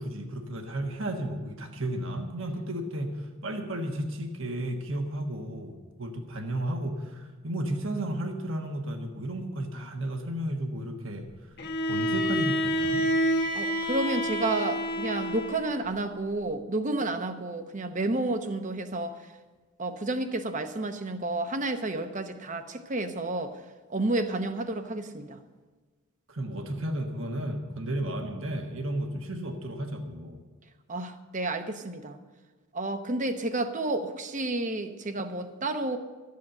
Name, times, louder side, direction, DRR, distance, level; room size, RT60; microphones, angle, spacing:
voice 1, 0.0-11.3 11.9-13.0 26.3-30.4, right 1 dB, 60° right, 4 dB, 1.3 m, -33 dB
Bowed string instrument, 11.6-15.9, equal, 50° left, 1.3 m, -28 dB
voice 2, 13.5-19.2 19.8-23.5 23.9-25.4 30.9-32.2 32.7-36.0, right 2 dB, 35° right, 8 dB, 0.9 m, -31 dB
13.5 x 8.5 x 7.7 m, 1.3 s
head